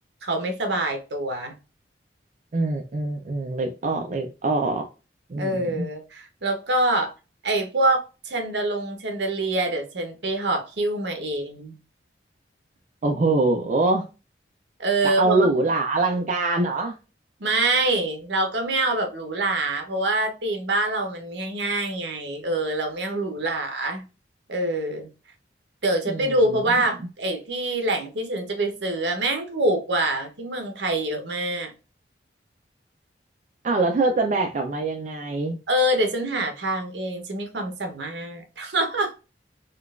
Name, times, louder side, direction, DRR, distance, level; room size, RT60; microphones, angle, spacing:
voice 1, 0.2-1.6 5.4-7.1 7.4-11.8 14.8-15.4 17.4-24.0 24.5-25.1 25.8-31.7 35.7-39.1, right 2 dB, 70° right, 0.9 m, -25 dB
voice 2, 2.5-4.9 5.3-5.9 13.0-14.0 15.0-17.0 26.1-26.6 33.6-35.6, right 2 dB, 40° right, 0.4 m, -24 dB
3.7 x 2.3 x 2.3 m
head